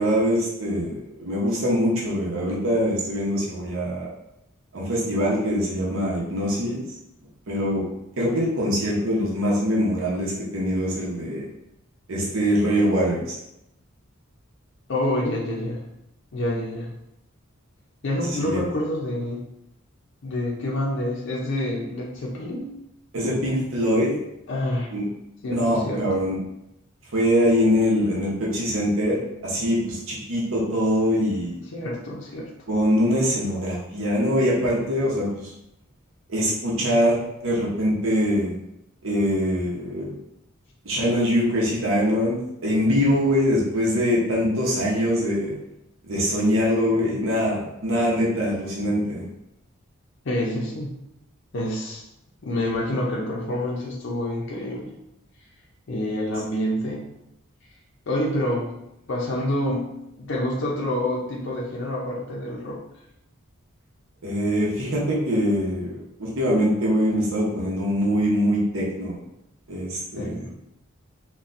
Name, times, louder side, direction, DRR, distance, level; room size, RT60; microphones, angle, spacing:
voice 1, 0.0-4.1 4.7-6.8 7.5-7.8 8.2-11.5 12.1-13.4 18.4-18.6 23.1-24.1 24.9-25.0 25.5-26.4 27.1-31.6 32.7-35.5 36.3-38.5 39.0-40.1 40.8-45.5 46.0-49.2 64.2-69.2 69.7-70.5, equal, 75° right, -5 dB, 0.8 m, -23 dB
voice 2, 14.9-15.8 16.3-16.9 18.0-19.4 20.2-22.7 24.5-24.9 25.4-26.1 31.7-32.5 50.2-50.9 51.5-52.0 52.4-54.9 55.9-57.1 58.1-58.8 59.1-62.8 70.2-70.5, left 1 dB, 60° left, -3 dB, 0.5 m, -27 dB
4.1 x 2.2 x 2.5 m, 0.85 s
head